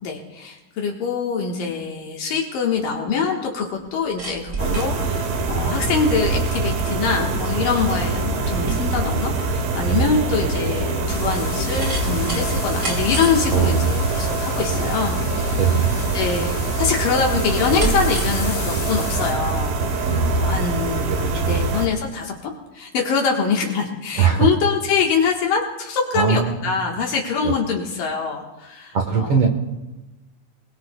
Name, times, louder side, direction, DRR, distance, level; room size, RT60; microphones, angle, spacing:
voice 1, 0.0-15.6 16.1-29.4, left 5 dB, 75° left, 0 dB, 3.1 m, -24 dB
sound 1, 3.8-21.5 21.8-21.9, right 3 dB, 30° right, 2.4 m, -32 dB
sound 2, 4.6-21.9, right 3 dB, 80° right, 3.1 m, -24 dB
sound 3, 11.1-19.3, left 4 dB, 60° left, 4.3 m, -35 dB
voice 2, 13.5-14.2 15.6-15.9 20.0-20.5 21.1-21.7 24.2-24.5 26.1-26.9 27.4-27.5 28.9-29.5, right 6 dB, 55° right, 2 dB, 2.0 m, -21 dB
27.5 x 20.5 x 2.3 m, 1.1 s
omnidirectional pair, 3.9 m